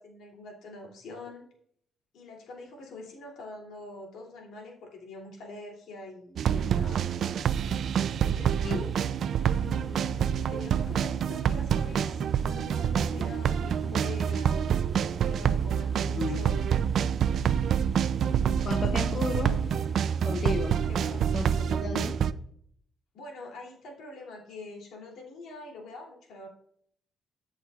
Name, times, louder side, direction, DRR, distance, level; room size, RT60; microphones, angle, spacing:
voice 1, 0.0-1.5 2.1-7.0 8.1-8.9 9.5-14.6 15.2-16.7 18.1-18.7 19.2-19.8 20.9-21.3 23.1-26.5, left 2 dB, 80° left, -1 dB, 2.8 m, -44 dB
sound 1, 6.4-22.3, right 8 dB, 65° right, 0.4 m, -27 dB
sound 2, 6.5-21.8, right 3 dB, 35° right, 1.5 m, -45 dB
voice 2, 16.1-16.5 18.6-19.6 20.3-20.8 21.3-22.2, left 4 dB, 45° left, 5 dB, 0.7 m, -33 dB
13.5 x 6.4 x 2.4 m, 0.65 s
cardioid pair, 90°, 0 cm